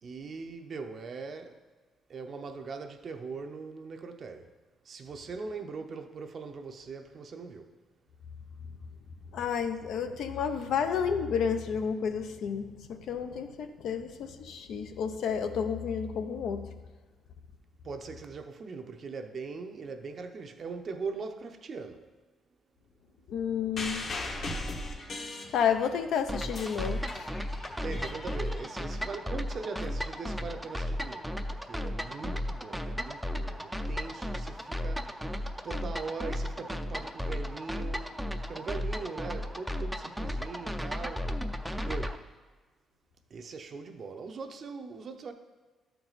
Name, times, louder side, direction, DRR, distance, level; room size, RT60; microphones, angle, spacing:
voice 1, 0.0-1.6 2.1-4.5 4.8-7.7 17.8-22.1 27.8-38.2 38.5-41.3 41.8-42.2 43.3-45.3, right 4 dB, 50° right, 0.7 m, -41 dB
voice 2, 9.3-16.7 23.3-24.1 25.5-27.3, left 7 dB, 75° left, 0.6 m, -31 dB
sound 1, 23.8-26.0 26.3-28.9 29.8-29.9, left 2 dB, 60° left, 1.3 m, -38 dB
sound 2, 26.3-42.2, equal, 5° right, 0.5 m, -35 dB
12.5 x 4.6 x 4.0 m
cardioid pair, 90°, 0 cm